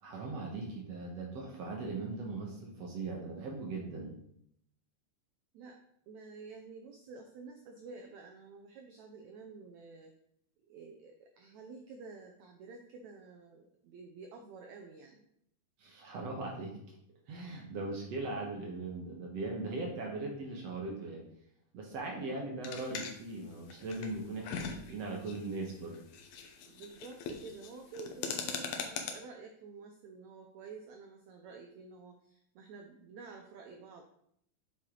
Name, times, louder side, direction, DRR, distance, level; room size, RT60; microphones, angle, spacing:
voice 1, 0.0-4.1 15.8-17.0 17.3-21.2 21.7-26.0, right 3 dB, 60° right, 0 dB, 1.9 m, -39 dB
voice 2, 6.1-10.1 10.7-15.3 26.7-34.0, right 4 dB, 85° right, 3 dB, 1.6 m, -50 dB
sound 1, 22.6-29.1, left 6 dB, 70° left, 1.7 m, -41 dB
7.5 x 6.5 x 3.9 m, 0.71 s
omnidirectional pair, 4.2 m